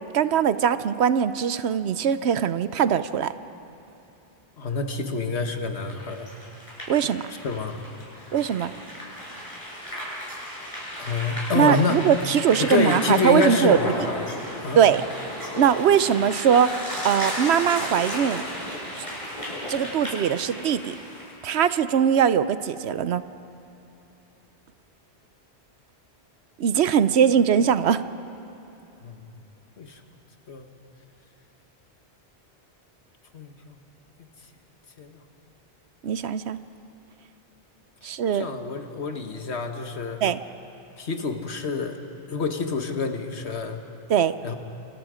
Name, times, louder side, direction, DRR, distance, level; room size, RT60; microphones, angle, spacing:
voice 1, 0.1-3.3 6.9-7.2 8.3-8.7 11.5-13.9 14.8-15.0 15.6-16.7 17.0-18.4 19.0-19.1 19.7-20.9 21.4-23.2 26.6-28.0 36.0-36.6 38.0-38.5 40.2-40.4 44.1-44.3, right 8 dB, 75° right, 13 dB, 0.9 m, -21 dB
voice 2, 4.6-6.3 7.4-7.8 8.1-8.3 11.0-12.0 12.6-14.8 29.0-29.3 29.8-30.0 30.5-30.7 33.3-33.8 35.0-35.2 38.3-40.2 41.0-42.0 42.3-43.8 44.4-44.5, left 4 dB, 80° left, 5 dB, 1.7 m, -27 dB
sound 1, 5.9-21.3, equal, 30° left, 7.2 m, -34 dB
27.5 x 25.5 x 5.0 m, 3.0 s
omnidirectional pair, 1.1 m